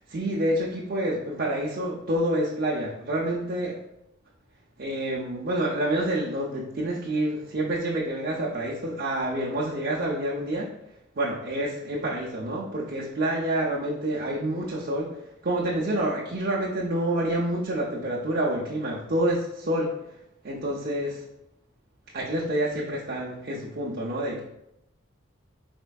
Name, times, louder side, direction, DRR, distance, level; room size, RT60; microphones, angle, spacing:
voice 1, 0.1-3.8 4.8-10.7 11.2-15.2 15.4-20.0 20.4-21.2 22.1-24.4, right 1 dB, 45° right, -6 dB, 0.5 m, -28 dB
4.3 x 4.2 x 2.3 m, 0.84 s
head